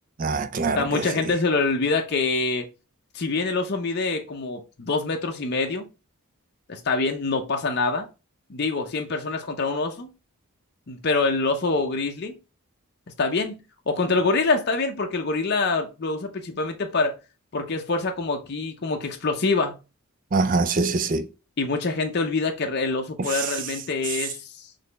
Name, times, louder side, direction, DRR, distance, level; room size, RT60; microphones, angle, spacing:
voice 1, 0.2-1.1 20.3-21.3 23.3-23.5, right 3 dB, 35° right, 0.4 m, -24 dB
voice 2, 0.7-2.7 3.1-5.9 6.7-8.1 8.5-10.1 10.9-12.3 13.2-17.1 17.5-19.8 21.6-24.4, left 3 dB, 45° left, 0.6 m, -25 dB
4.0 x 3.2 x 3.9 m
head